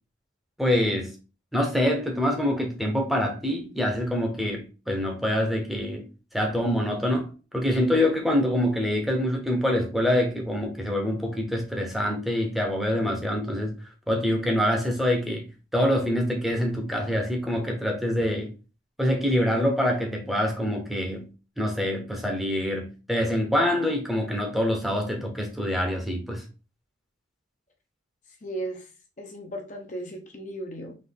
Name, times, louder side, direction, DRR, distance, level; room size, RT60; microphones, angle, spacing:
voice 1, 0.6-1.1 1.5-6.1 6.3-13.7 14.1-15.5 15.7-18.5 19.0-21.3 21.6-26.4, left 1 dB, ahead, 0.8 m, -25 dB
voice 2, 28.4-28.9 29.2-31.0, right 1 dB, 40° left, 0.7 m, -36 dB
4.0 x 3.1 x 3.5 m
head